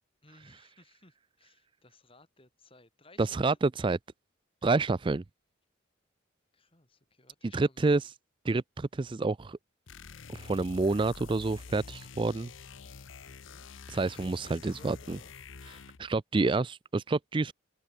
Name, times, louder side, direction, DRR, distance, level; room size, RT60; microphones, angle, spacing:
voice 1, 0.2-3.6 6.5-8.1 13.3-13.7 14.0-15.5, left 2 dB, 30° left, 5.7 m, -59 dB
voice 2, 3.2-4.0 4.6-5.2 7.5-8.1 8.4-9.6 10.3-12.5 13.9-15.2 16.0-17.5, right 3 dB, 25° right, 0.4 m, -28 dB
sound 1, 9.9-16.1, left 5 dB, 80° left, 0.9 m, -47 dB
open air
head